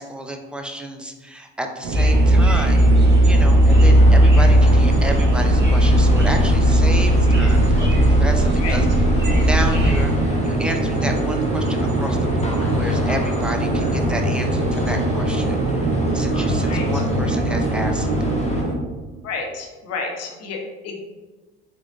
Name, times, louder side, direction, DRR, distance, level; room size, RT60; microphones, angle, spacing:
voice 1, 0.0-2.9 3.2-8.9 9.3-10.1 10.4-18.2, right 1 dB, 5° right, 4 dB, 0.4 m, -31 dB
sound 1, 1.8-18.8, right 3 dB, 70° right, 0.8 m, -24 dB
sound 2, 1.9-10.0, right 1 dB, 35° right, 1.1 m, -16 dB
sound 3, 3.7-18.6, left 3 dB, 20° left, 0.8 m, -26 dB
voice 2, 19.2-21.0, left 4 dB, 55° left, 2 dB, 0.9 m, -30 dB
3.7 x 3.4 x 2.5 m, 1.3 s
supercardioid pair, 80°, 30 cm